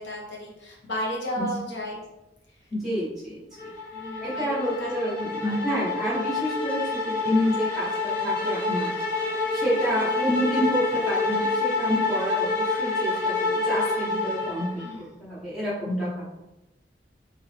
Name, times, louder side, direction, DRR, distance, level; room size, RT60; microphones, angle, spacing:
voice 1, 0.0-2.0 3.9-4.9 5.4-5.6 9.9-10.1 14.8-15.1, equal, 85° left, -2 dB, 1.2 m, -34 dB
voice 2, 2.7-3.4 4.2-6.8 7.0-8.9 9.5-16.2, equal, ahead, -11 dB, 1.0 m, -28 dB
sound 1, 3.6-14.9, left 3 dB, 50° left, 1.3 m, -27 dB
4.1 x 2.9 x 3.3 m, 0.99 s
head